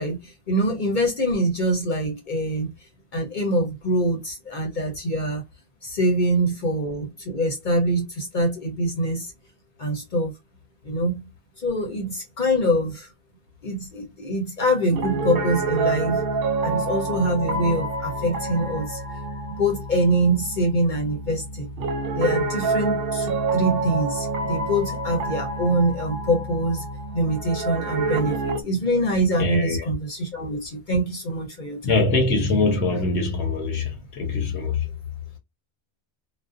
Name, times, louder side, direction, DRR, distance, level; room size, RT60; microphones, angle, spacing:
voice 1, 0.0-2.7 3.1-5.4 5.8-9.3 9.8-10.3 10.8-11.3 11.6-13.1 13.6-16.2 16.6-19.0 19.6-21.7 22.1-26.8 27.1-32.0, right 1 dB, 50° left, 0.8 m, -24 dB
Piano, 14.9-28.6, right 3 dB, 65° right, 0.8 m, -27 dB
voice 2, 29.4-29.9 31.8-34.9, left 3 dB, 80° left, 0.9 m, -23 dB
2.5 x 2.1 x 2.4 m
omnidirectional pair, 1.1 m